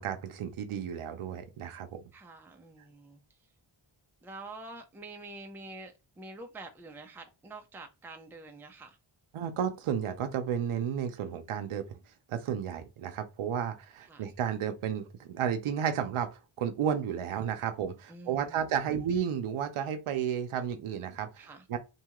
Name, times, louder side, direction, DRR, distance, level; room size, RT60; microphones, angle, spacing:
voice 1, 0.0-2.0 9.3-12.0 12.3-21.8, right 8 dB, 80° right, 0.6 m, -32 dB
voice 2, 2.1-3.2 4.2-9.0 14.1-14.2 17.5-17.6 18.1-18.7 21.4-21.6, right 2 dB, 5° right, 0.4 m, -47 dB
2.7 x 2.3 x 2.9 m
wide cardioid pair, 120°, 49 cm